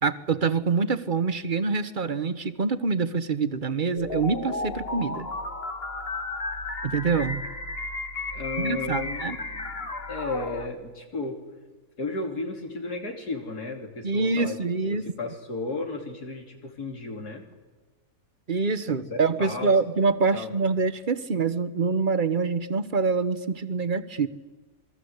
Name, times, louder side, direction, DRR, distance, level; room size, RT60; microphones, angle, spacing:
voice 1, 0.0-5.3 6.8-7.4 8.6-9.4 14.0-15.1 18.5-24.3, right 4 dB, 35° right, 13 dB, 1.1 m, -25 dB
sound 1, 4.0-10.7, left 2 dB, 40° left, 1.9 m, -33 dB
voice 2, 8.3-11.4 12.0-14.6 14.8-17.4 19.1-19.8 20.3-20.5, left 3 dB, 85° left, 3 dB, 3.8 m, -34 dB
27.5 x 20.5 x 8.1 m, 1.3 s
omnidirectional pair, 1.6 m